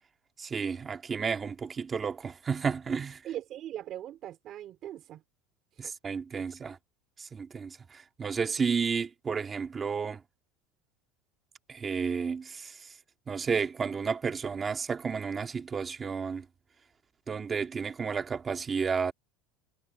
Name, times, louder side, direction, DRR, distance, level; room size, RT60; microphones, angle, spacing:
voice 1, 0.4-3.2 5.8-6.8 7.2-10.2 11.7-12.8 13.3-16.5 17.3-19.1, right 5 dB, 15° right, 1.9 m, -32 dB
voice 2, 3.2-5.2 5.7-5.9, right 12 dB, 35° right, 4.5 m, -40 dB
cardioid pair, 170°, 0 cm